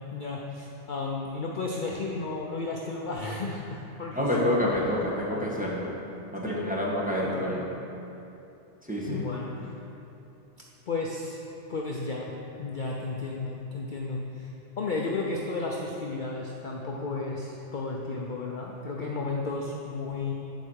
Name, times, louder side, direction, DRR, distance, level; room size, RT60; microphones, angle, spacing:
voice 1, 0.1-4.5 5.3-5.7 6.5-6.7 7.2-7.6 9.1-9.7 10.9-11.4 11.7-12.3 12.6-20.3, left 3 dB, 50° left, -2 dB, 0.7 m, -33 dB
voice 2, 4.1-5.9 6.3-7.6 8.8-9.2, left 1 dB, 5° right, -6 dB, 1.5 m, -28 dB
10.5 x 4.8 x 6.3 m, 2.9 s
omnidirectional pair, 1.3 m